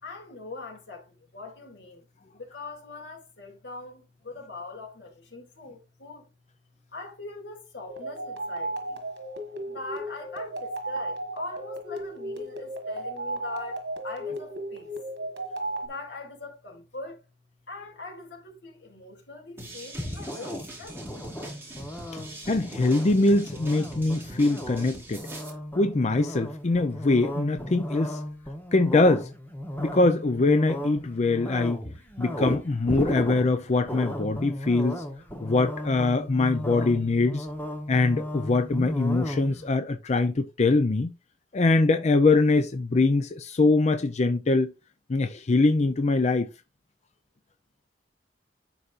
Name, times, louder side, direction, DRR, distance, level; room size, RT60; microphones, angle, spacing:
voice 1, 0.0-2.1 2.3-6.3 6.9-9.0 9.7-14.9 15.8-17.3 17.7-21.0, left 3 dB, 85° left, 2.5 m, -42 dB
sound 1, 7.9-15.9, right 1 dB, 75° right, 1.5 m, -34 dB
sound 2, 19.6-25.5, right 1 dB, 15° right, 2.6 m, -43 dB
sound 3, 19.9-39.8, equal, 10° left, 1.0 m, -35 dB
voice 2, 22.5-25.3 25.8-28.2 28.7-29.3 29.8-31.8 32.2-35.0 35.4-37.5 37.9-41.1 41.5-44.7 45.1-46.5, left 3 dB, 40° left, 0.5 m, -23 dB
11.0 x 4.1 x 2.5 m
head